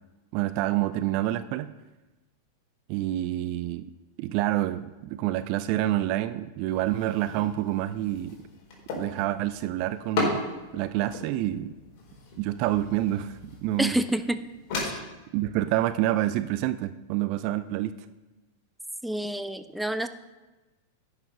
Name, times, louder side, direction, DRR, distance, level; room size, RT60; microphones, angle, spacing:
voice 1, 0.3-1.7 2.9-3.9 4.2-8.4 8.9-10.4 10.7-11.7 12.4-14.0 15.3-17.9, right 14 dB, 50° right, 13 dB, 0.5 m, -27 dB
sound 1, 6.7-14.9, left 3 dB, 50° left, 4.3 m, -36 dB
voice 2, 13.8-14.4 14.8-15.0 19.0-20.1, right 1 dB, 5° right, 10 dB, 0.7 m, -28 dB
11.0 x 6.8 x 5.5 m, 1.1 s
figure-of-eight pair, 95°, 0 cm